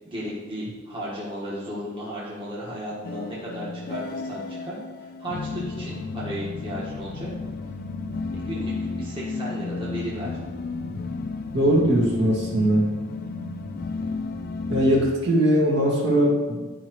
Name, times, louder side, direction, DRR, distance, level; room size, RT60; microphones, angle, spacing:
voice 1, 0.0-7.3 8.3-10.3, equal, 25° right, -7 dB, 1.6 m, -34 dB
sound 1, 3.0-15.1, left 3 dB, 45° left, 0.4 m, -33 dB
voice 2, 11.5-12.9 14.7-16.6, equal, 55° right, -5 dB, 2.0 m, -20 dB
11.0 x 4.9 x 3.1 m, 1.3 s
head